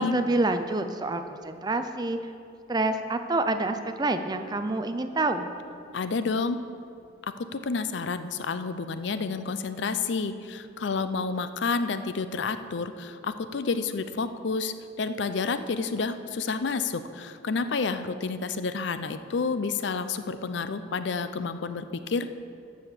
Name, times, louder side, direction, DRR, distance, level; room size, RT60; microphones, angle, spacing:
voice 1, 0.0-2.2 2.7-5.5, right 2 dB, 20° right, 8 dB, 0.4 m, -27 dB
voice 2, 5.9-6.6 7.4-22.3, left 4 dB, 60° left, 11 dB, 0.5 m, -30 dB
12.5 x 5.0 x 7.3 m, 2.5 s
head